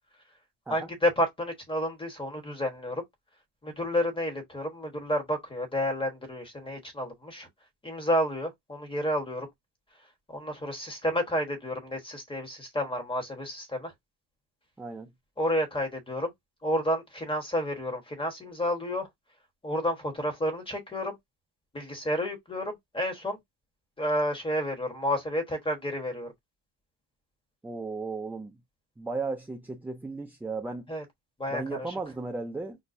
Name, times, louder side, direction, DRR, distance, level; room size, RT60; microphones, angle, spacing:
voice 1, 0.7-3.0 3.6-7.5 7.8-9.5 10.3-13.9 15.4-16.3 16.6-19.1 19.6-21.2 21.7-23.4 24.0-26.3 30.9-31.0 31.4-31.9, equal, 15° left, 1.1 m, -30 dB
voice 2, 14.8-15.1 27.6-28.6 29.0-30.9 31.5-32.8, right 3 dB, 5° right, 0.3 m, -35 dB
5.3 x 2.0 x 2.6 m
cardioid pair, 115°, 41 cm